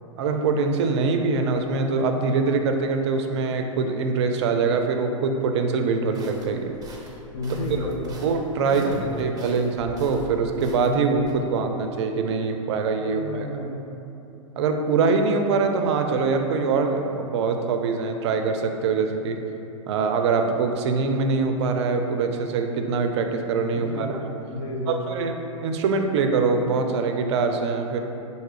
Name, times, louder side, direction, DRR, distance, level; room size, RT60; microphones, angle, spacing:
voice 1, 0.2-6.7 7.7-7.9 8.2-8.9 9.2-13.5 14.6-19.4 19.9-24.2 24.9-25.3 25.6-28.0, right 4 dB, 60° right, 5 dB, 0.4 m, -23 dB
sound 1, 6.1-11.3, right 1 dB, 20° right, 0.7 m, -43 dB
voice 2, 7.3-8.2 8.7-9.5 13.0-13.8 23.7-24.1 24.5-25.2, left 1 dB, 65° left, 0 dB, 0.8 m, -32 dB
5.7 x 2.7 x 3.2 m, 2.9 s
hypercardioid pair, 105°, 17 cm